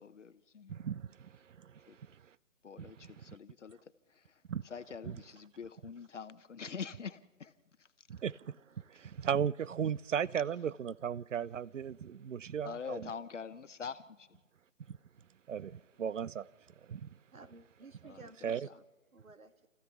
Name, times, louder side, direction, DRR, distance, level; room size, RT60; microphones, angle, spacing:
voice 1, 0.0-0.8 1.9-2.0 2.6-7.5 7.8-8.1 12.6-14.3 18.1-18.5, left 6 dB, 60° left, 0.9 m, -45 dB
voice 2, 0.7-2.2 2.8-3.4 4.5-4.6 5.1-5.2 8.1-13.1 14.9-15.0 15.5-16.5 16.9-17.1 18.4-18.7, right 8 dB, 65° right, 0.6 m, -37 dB
voice 3, 17.3-18.8 19.1-19.7, right 3 dB, 80° right, 1.7 m, -55 dB
28.5 x 15.0 x 7.0 m
figure-of-eight pair, 145°, 41 cm